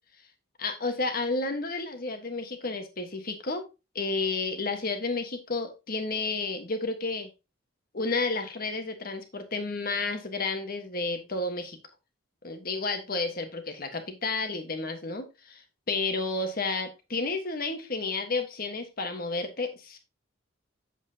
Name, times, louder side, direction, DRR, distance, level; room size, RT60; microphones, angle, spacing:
voice 1, 0.6-3.6 3.9-7.3 7.9-11.8 12.4-20.0, left 3 dB, 45° left, 6 dB, 1.4 m, -31 dB
7.7 x 7.6 x 2.8 m, 0.27 s
head